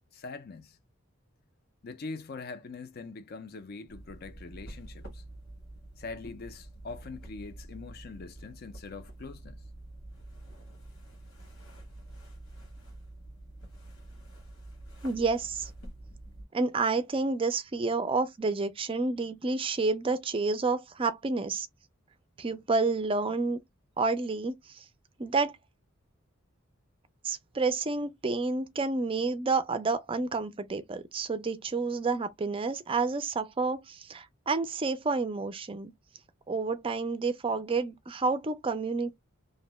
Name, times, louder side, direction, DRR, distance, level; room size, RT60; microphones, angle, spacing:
voice 1, 0.1-0.8 1.8-5.2 6.0-9.6, left 4 dB, 45° left, 0.4 m, -43 dB
sound 1, 3.9-16.5, right 1 dB, 80° left, 1.4 m, -47 dB
voice 2, 15.0-15.7 16.5-21.7 22.4-23.6 24.0-24.8 25.2-25.5 27.2-35.9 36.5-39.1, right 3 dB, 25° right, 0.4 m, -29 dB
2.6 x 2.1 x 3.0 m
head